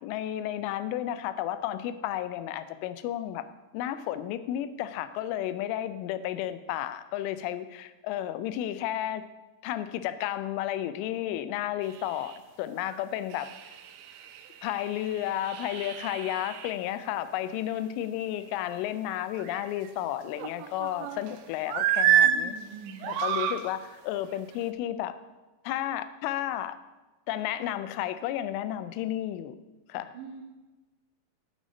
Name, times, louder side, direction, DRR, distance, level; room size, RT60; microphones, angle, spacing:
voice 1, 0.0-3.5 3.7-9.2 9.6-13.5 14.6-22.6 23.0-25.2 25.6-26.8 27.3-29.6 29.9-30.1, left 12 dB, 85° left, 12 dB, 3.1 m, -32 dB
sound 1, 11.9-12.4 12.9-13.0 13.3-16.7 19.2-19.9 20.4-21.3 21.7-22.4 22.9-23.6 24.4-24.6, right 9 dB, 80° right, 2.9 m, -29 dB
voice 2, 22.2-23.1 30.1-30.4, right 6 dB, 65° right, -4 dB, 2.1 m, -42 dB
10.0 x 9.2 x 5.1 m, 1.1 s
omnidirectional pair, 5.6 m